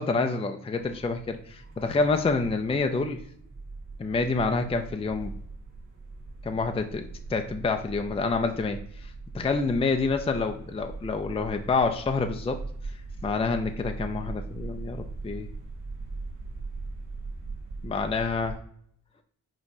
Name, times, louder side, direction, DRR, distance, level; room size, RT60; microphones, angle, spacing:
voice 1, 0.0-3.2 4.0-5.3 6.4-12.6 13.2-15.5 17.8-18.6, left 4 dB, 20° left, 5 dB, 0.4 m, -28 dB
sound 1, 0.7-18.6, right 3 dB, 60° right, 1.3 m, -40 dB
5.2 x 2.9 x 2.7 m, 0.64 s
cardioid pair, 60°, 32 cm